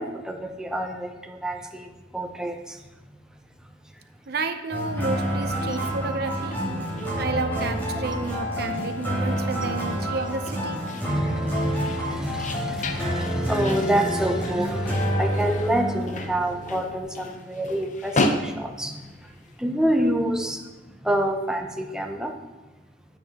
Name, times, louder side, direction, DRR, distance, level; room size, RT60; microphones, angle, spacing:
voice 1, 0.0-2.8 11.0-19.0 19.6-20.6 21.0-22.3, right 1 dB, 5° right, 3 dB, 0.7 m, -27 dB
voice 2, 4.3-6.6 7.2-10.8, right 3 dB, 60° right, 7 dB, 0.7 m, -30 dB
sound 1, 4.7-17.0, equal, 10° left, 3.3 m, -29 dB
sound 2, 5.1-19.6, left 2 dB, 45° left, 0.7 m, -35 dB
9.4 x 9.3 x 2.9 m, 1.2 s
head